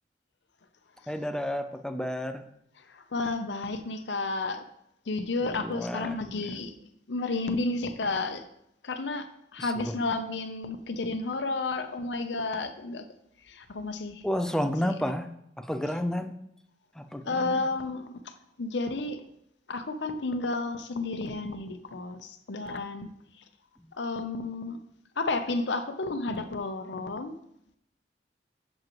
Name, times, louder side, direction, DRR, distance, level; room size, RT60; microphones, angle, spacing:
voice 1, 1.1-2.4 5.4-6.6 9.6-10.0 14.2-15.3 15.6-16.3 17.0-17.7, equal, 5° left, 7 dB, 0.5 m, -31 dB
voice 2, 2.9-4.6 5.1-6.8 7.1-8.4 8.8-13.0 13.4-14.2 14.8-15.0 17.2-18.1 18.6-19.2 19.7-23.1 24.0-24.8 25.2-27.4, left 3 dB, 85° left, 8 dB, 0.7 m, -31 dB
7.6 x 7.4 x 3.1 m, 0.76 s
head